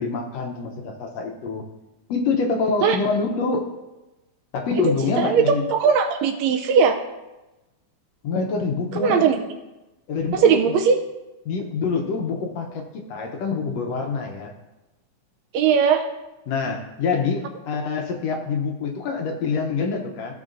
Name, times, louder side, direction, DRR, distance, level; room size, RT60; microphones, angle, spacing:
voice 1, 0.0-1.6 2.1-3.7 4.5-5.6 8.2-9.3 10.1-10.6 11.5-14.5 16.5-20.3, left 4 dB, 70° left, 3 dB, 1.8 m, -25 dB
voice 2, 5.2-7.0 9.0-9.4 10.3-11.0 15.5-16.0, right 6 dB, 80° right, 6 dB, 1.7 m, -19 dB
14.5 x 6.2 x 2.5 m, 1.0 s
omnidirectional pair, 3.4 m